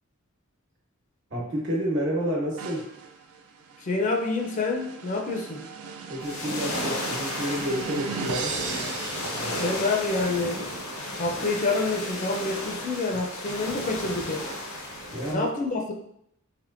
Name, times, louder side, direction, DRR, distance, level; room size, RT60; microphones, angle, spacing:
voice 1, 1.3-2.9 6.1-8.6 9.3-9.8 15.1-15.5, equal, 60° right, -4 dB, 1.1 m, -30 dB
sound 1, 2.6-10.1, right 5 dB, 85° right, 0.4 m, -38 dB
voice 2, 3.8-5.7 9.6-10.7 11.2-14.4 15.3-15.9, left 3 dB, 35° left, 2 dB, 0.4 m, -27 dB
sound 2, 6.2-15.3, left 1 dB, 85° left, 0.7 m, -33 dB
3.4 x 2.9 x 2.5 m, 0.73 s
head